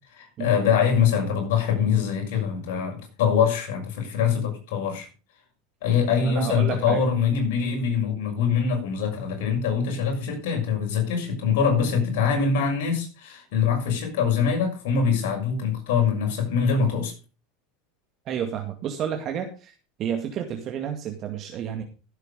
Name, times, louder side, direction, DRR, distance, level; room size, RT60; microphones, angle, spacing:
voice 1, 0.2-5.1 5.8-17.1, left 6 dB, 70° left, 6.5 m, -23 dB
voice 2, 6.2-7.0 18.3-19.7 20.0-21.8, right 8 dB, 45° right, 2.2 m, -30 dB
15.0 x 8.3 x 5.2 m
hypercardioid pair, 95°, 0 cm